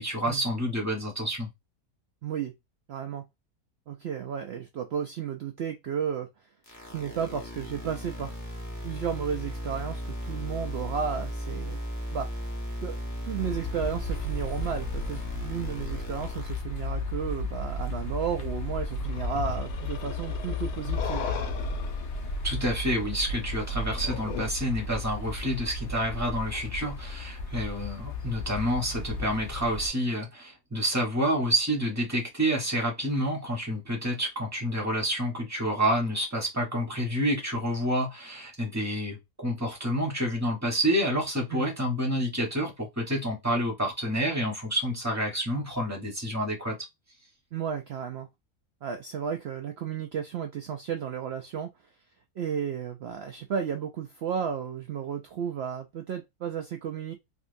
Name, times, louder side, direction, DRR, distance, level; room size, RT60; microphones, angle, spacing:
voice 1, 0.0-1.5 22.4-46.8, equal, 10° right, 1.1 m, -28 dB
voice 2, 2.2-2.5 2.9-3.2 3.9-6.3 6.9-8.3 8.8-11.8 12.1-12.3 12.8-13.0 13.2-21.3 41.5-41.7 47.5-48.3 48.8-51.7 52.4-57.1, right 7 dB, 80° right, 0.5 m, -33 dB
sound 1, 6.7-16.6, equal, 15° left, 0.6 m, -36 dB
sound 2, 13.4-29.9, left 2 dB, 55° left, 1.0 m, -34 dB
sound 3, 19.0-24.5, left 5 dB, 75° left, 1.1 m, -37 dB
3.6 x 2.6 x 2.6 m
omnidirectional pair, 1.6 m